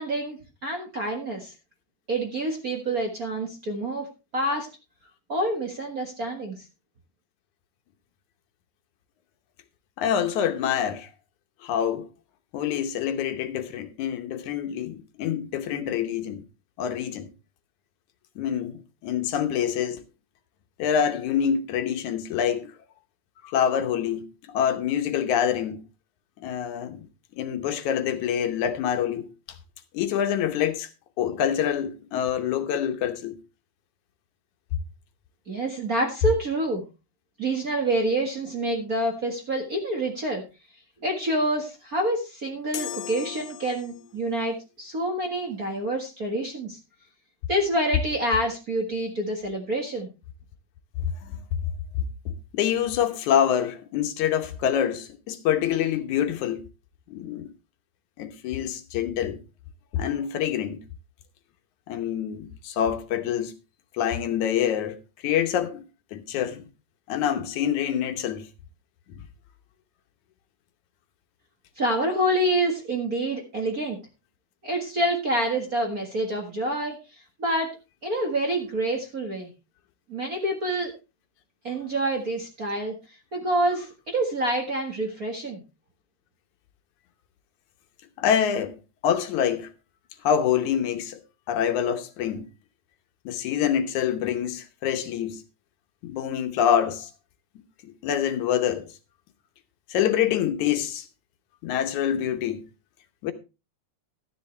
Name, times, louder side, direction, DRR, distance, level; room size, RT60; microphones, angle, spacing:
voice 1, 0.0-1.5 2.1-4.1 4.3-4.7 5.3-6.6 35.5-36.8 37.4-40.4 41.0-46.8 47.5-50.1 71.8-74.0 74.6-77.0 77.4-77.7 78.0-79.5 80.1-80.9 81.6-82.9 83.3-85.6, right 1 dB, 35° right, 1.6 m, -27 dB
voice 2, 10.0-11.1 11.6-12.1 12.5-16.4 16.8-17.3 18.4-20.0 20.8-22.7 23.4-25.8 26.4-27.1 27.4-29.3 29.9-30.9 31.2-33.4 51.2-51.4 52.5-56.6 57.1-57.5 58.2-59.4 59.9-60.8 61.9-63.5 63.9-65.0 65.2-65.8 66.1-66.7 67.1-68.5 69.1-69.2 88.2-88.7 89.0-89.7 90.2-91.2 91.5-92.5 93.3-95.4 96.0-97.1 97.8-98.9 99.9-101.1 101.6-102.6 103.2-103.3, left 9 dB, 75° left, 2.3 m, -26 dB
sound 1, 42.7-44.2, left 13 dB, 90° left, 2.3 m, -37 dB
13.0 x 10.0 x 3.3 m
omnidirectional pair, 3.6 m